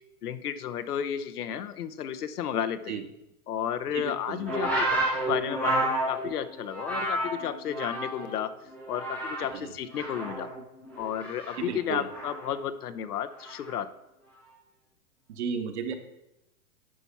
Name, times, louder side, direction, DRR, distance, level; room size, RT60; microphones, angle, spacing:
voice 1, 0.2-3.0 3.5-5.0 5.3-5.7 6.1-8.5 8.9-10.5 11.0-13.9, left 9 dB, 90° left, 10 dB, 0.9 m, -32 dB
voice 2, 3.9-4.5 9.5-9.7 11.6-12.1 15.3-15.9, right 6 dB, 50° right, 7 dB, 1.2 m, -34 dB
sound 1, 4.5-8.4 8.7-9.6 9.9-12.5 13.4-13.7, right 1 dB, 5° right, 0.3 m, -31 dB
10.5 x 4.2 x 5.6 m, 0.89 s
hypercardioid pair, 155°, 44 cm